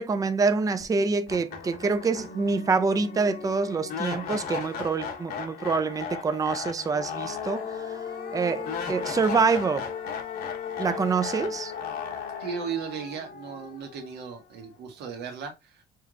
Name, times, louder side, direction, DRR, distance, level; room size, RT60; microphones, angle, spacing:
voice 1, 0.0-7.7 8.3-9.9 10.8-11.7, right 4 dB, 20° right, 0.5 m, -26 dB
sound 1, 0.8-0.9 1.3-14.3, left 6 dB, 70° left, 1.2 m, -36 dB
voice 2, 12.4-15.8, right 6 dB, 80° right, 1.5 m, -36 dB
5.5 x 3.3 x 2.4 m
cardioid pair, 110°, 17 cm